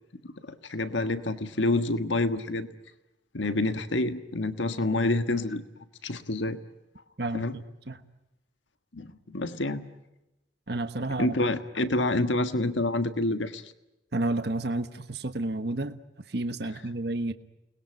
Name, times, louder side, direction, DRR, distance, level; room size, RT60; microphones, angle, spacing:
voice 1, 0.2-2.7 3.3-5.6 6.0-6.6 7.3-7.6 8.9-9.8 11.2-13.7, left 2 dB, 80° left, 9 dB, 1.5 m, -28 dB
voice 2, 7.2-8.0 10.7-11.3 14.1-16.0 16.3-17.3, right 2 dB, 60° right, 9 dB, 1.3 m, -31 dB
29.5 x 21.0 x 9.2 m, 0.97 s
head